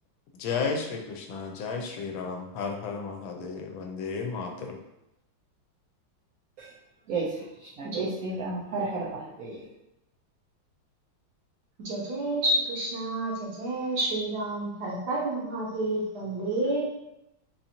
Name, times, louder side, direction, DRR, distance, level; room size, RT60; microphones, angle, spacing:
voice 1, 0.4-4.8, left 5 dB, 80° left, 3 dB, 1.3 m, -33 dB
voice 2, 7.8-9.7, right 3 dB, 90° right, -5 dB, 0.7 m, -32 dB
voice 3, 11.8-16.9, right 1 dB, 65° right, -3 dB, 1.1 m, -29 dB
4.1 x 2.5 x 2.8 m, 0.86 s
omnidirectional pair, 2.2 m